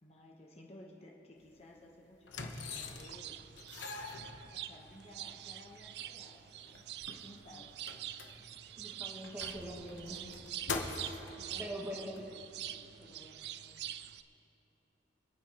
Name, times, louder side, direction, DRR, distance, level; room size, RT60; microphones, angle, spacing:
voice 1, 0.0-3.4 4.1-6.8 7.2-7.7 11.3-13.5, left 1 dB, 35° left, -2 dB, 1.0 m, -56 dB
sound 1, 1.4-1.6 2.2-3.3 3.6-4.9 5.7-5.8 6.0-6.1 6.6-8.7 9.1-11.3 12.2-12.3, left 4 dB, 85° left, 1.0 m, -43 dB
sound 2, 2.5-14.2, right 11 dB, 60° right, 0.4 m, -46 dB
voice 2, 8.8-10.2 11.6-12.2, equal, 10° right, -3 dB, 1.7 m, -43 dB
26.5 x 9.0 x 3.0 m, 3.0 s
head